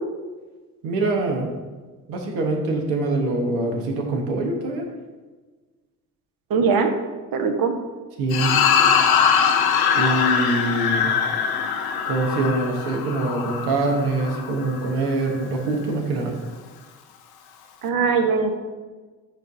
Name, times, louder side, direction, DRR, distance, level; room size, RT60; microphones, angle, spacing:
voice 1, 0.8-1.5 2.1-4.9 8.2-8.6 9.9-11.1 12.0-16.3, right 2 dB, 70° right, 1 dB, 1.4 m, -24 dB
voice 2, 6.5-6.9 7.3-7.7 17.8-18.5, right 5 dB, 50° right, 5 dB, 1.1 m, -20 dB
sound 1, 8.3-14.8, left 7 dB, 55° left, 0.9 m, -22 dB
10.0 x 5.0 x 2.7 m, 1.3 s
hypercardioid pair, 55°, 46 cm